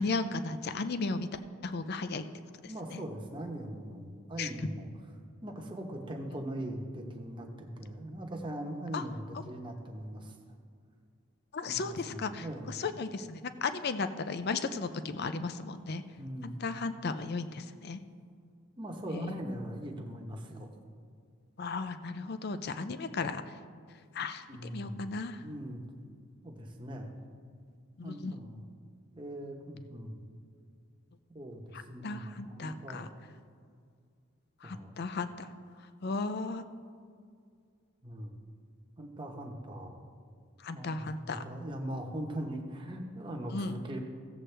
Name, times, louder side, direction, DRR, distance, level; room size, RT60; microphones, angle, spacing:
voice 1, 0.0-2.3 2.6-3.0 4.4-4.5 8.9-9.0 11.5-16.0 16.4-18.0 19.1-19.4 21.6-23.6 24.1-25.4 28.0-28.4 32.0-33.1 34.6-35.5 36.0-36.6 40.6-41.4 43.5-43.8, left 4 dB, 45° left, 11 dB, 0.4 m, -35 dB
voice 2, 2.7-4.9 5.4-10.4 11.7-12.7 16.2-16.6 18.8-20.7 24.5-25.2 25.4-25.8 26.4-27.2 28.0-28.6 29.2-30.2 31.3-33.2 34.6-34.9 38.0-38.3 39.0-40.0 40.7-44.0, right 1 dB, 20° right, 1 dB, 1.0 m, -40 dB
16.0 x 7.6 x 3.3 m, 2.2 s
head